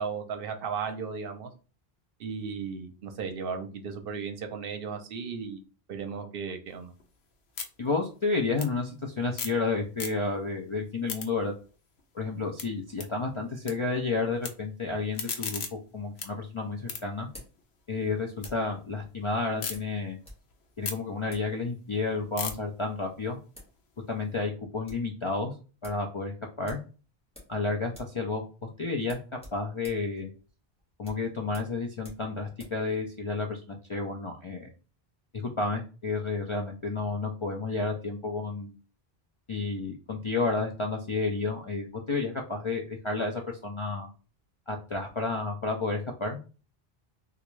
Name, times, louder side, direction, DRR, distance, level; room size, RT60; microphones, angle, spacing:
voice 1, 0.0-1.5 2.2-5.6 5.9-6.9, right 5 dB, 65° right, 6 dB, 0.8 m, -35 dB
sound 1, 6.7-9.7 9.9-10.5 10.8-13.7 14.0-14.5 14.9-18.5 18.9-19.7 20.2-24.4, left 6 dB, 85° left, 0.9 m, -40 dB
voice 2, 7.8-11.5 12.1-17.3 17.9-20.2 20.8-23.4 24.1-25.5 25.8-26.8 27.5-28.4 28.8-29.2 29.5-30.3 31.0-34.7 35.3-38.8 39.5-44.1 44.7-46.4, left 3 dB, 50° left, 1 dB, 0.3 m, -31 dB
sound 2, 15.9-18.8 19.7-20.5 20.7-20.8 21.2-21.5 22.2-22.7 23.3-23.4 23.5-23.8 24.1-24.2 24.5-25.1 25.4-25.5 25.8-26.0 26.6-27.6 27.9-28.2 28.5-28.6 29.0-32.8, left 1 dB, 5° left, 1.4 m, -51 dB
3.3 x 2.4 x 3.1 m, 0.35 s
omnidirectional pair, 1.0 m